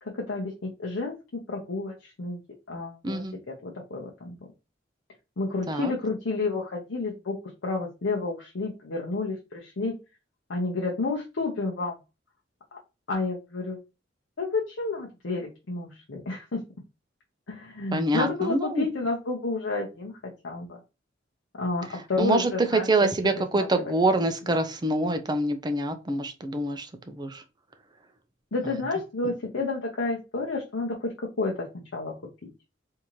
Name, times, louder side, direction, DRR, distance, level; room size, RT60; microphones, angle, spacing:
voice 1, 0.1-2.4 2.7-3.2 3.6-4.4 5.4-7.4 7.6-9.9 10.5-11.9 12.7-12.8 13.1-13.8 14.4-16.6 17.5-20.1 20.4-20.8 21.6-23.1 23.5-23.9 24.5-24.6 28.5-31.1 31.4-31.5 31.9-32.1, left 3 dB, 80° left, 0.7 m, -30 dB
voice 2, 3.0-3.3 5.7-5.9 17.9-18.9 22.2-27.4 28.6-28.8, right 2 dB, 20° right, 0.5 m, -26 dB
3.7 x 2.7 x 3.0 m
head